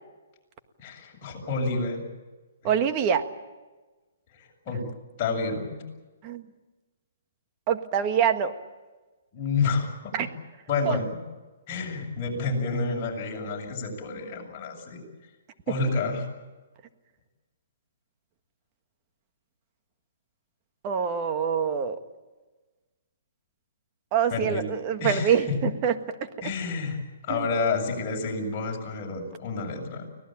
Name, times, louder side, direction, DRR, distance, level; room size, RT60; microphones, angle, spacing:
voice 1, 0.8-2.0 2.6-2.7 4.4-4.8 5.2-5.8 9.3-10.3 10.7-11.2 11.7-15.0 15.7-16.3 24.3-24.6 25.0-25.6 26.4-27.0 27.2-30.1, left 4 dB, 30° left, -1 dB, 7.2 m, -29 dB
voice 2, 2.6-3.2 6.2-6.4 7.7-8.5 10.1-10.3 10.8-11.0 20.8-22.0 24.1-25.9 26.2-26.5 27.3-27.5, right 8 dB, 30° right, 8 dB, 1.6 m, -25 dB
25.0 x 18.0 x 8.9 m, 1.2 s
hypercardioid pair, 155°, 0 cm